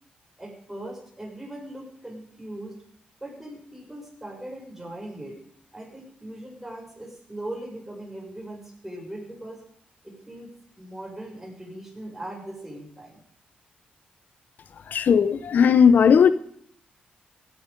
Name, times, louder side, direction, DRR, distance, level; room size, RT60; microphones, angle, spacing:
voice 1, 0.4-2.8 3.2-5.4 5.7-9.6 10.0-10.5 10.8-13.2, right 1 dB, 10° right, 6.8 m, -39 dB
voice 2, 14.9-16.3, left 7 dB, 65° left, 0.6 m, -16 dB
16.0 x 12.0 x 5.3 m
cardioid pair, 70°, 3 cm